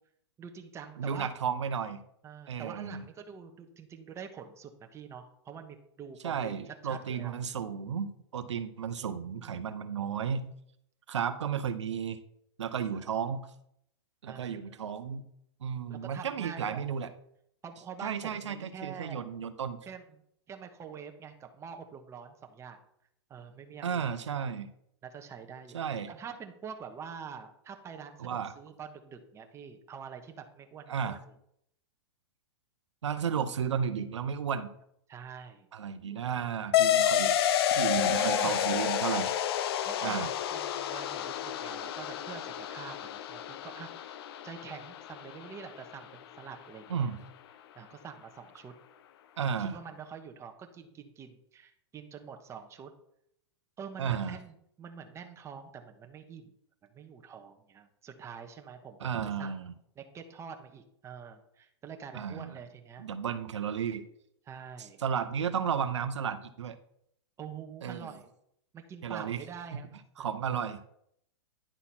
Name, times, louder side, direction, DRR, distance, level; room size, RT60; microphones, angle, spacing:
voice 1, 0.4-1.3 2.2-7.3 9.0-9.5 11.4-11.5 12.6-13.1 14.3-14.8 15.9-16.9 17.6-19.3 19.9-20.2 20.5-22.8 23.3-24.1 25.0-31.2 35.1-35.7 38.0-38.9 39.8-47.1 47.8-48.7 49.4-52.9 53.8-56.5 56.8-59.6 60.0-63.0 64.4-65.0 67.4-68.3 68.7-69.9 70.2-70.3, right 7 dB, 20° right, 5 dB, 1.1 m, -46 dB
voice 2, 1.0-2.0 2.5-3.0 6.2-10.5 11.1-12.2 12.6-13.5 14.2-15.3 15.6-17.1 18.0-19.8 23.8-24.7 25.7-26.1 28.2-28.5 30.9-31.2 33.0-34.7 35.7-37.3 37.7-39.3 40.0-40.3 46.9-47.2 49.4-49.8 54.0-54.4 59.0-59.7 62.1-62.6 63.0-64.0 64.8-66.8 67.8-68.1 69.0-69.4 69.7-69.8 70.2-70.9, right 7 dB, 90° right, 10 dB, 0.7 m, -33 dB
sound 1, 36.7-45.8, left 10 dB, 60° left, 0.6 m, -30 dB
10.0 x 4.1 x 6.0 m, 0.72 s
hypercardioid pair, 130°, 15 cm